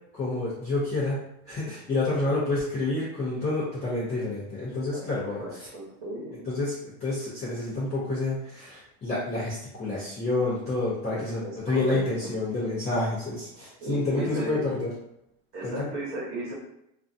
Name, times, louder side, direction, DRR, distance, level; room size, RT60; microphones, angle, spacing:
voice 1, 0.1-5.7 6.5-14.9 15.6-15.9, left 2 dB, 15° left, -12 dB, 0.5 m, -29 dB
voice 2, 4.9-6.4 11.1-12.3 13.8-14.6 15.5-16.5, right 1 dB, 40° right, -5 dB, 1.1 m, -36 dB
2.5 x 2.1 x 2.6 m, 0.80 s
supercardioid pair, 155°, 47 cm